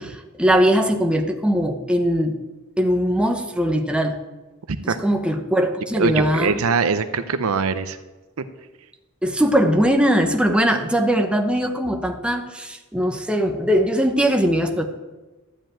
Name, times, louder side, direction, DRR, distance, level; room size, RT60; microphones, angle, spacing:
voice 1, 0.0-2.4 2.8-4.2 4.8-6.6 9.2-14.9, equal, 5° right, 4 dB, 0.9 m, -20 dB
voice 2, 6.0-8.0, right 5 dB, 65° right, 11 dB, 0.6 m, -22 dB
12.5 x 5.1 x 8.9 m, 1.2 s
head